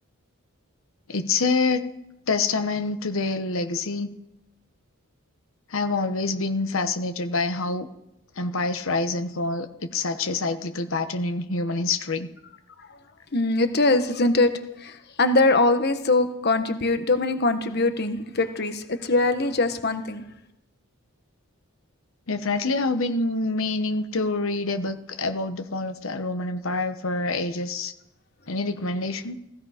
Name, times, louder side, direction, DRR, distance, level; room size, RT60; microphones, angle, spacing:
voice 1, 1.1-1.8 2.3-4.1 5.7-7.9 8.4-12.3 22.3-27.9 28.5-29.3, left 3 dB, 65° left, 8 dB, 1.0 m, -26 dB
voice 2, 13.3-14.5 14.8-20.2, left 2 dB, 50° left, 8 dB, 1.3 m, -22 dB
16.5 x 15.5 x 5.1 m, 0.83 s
head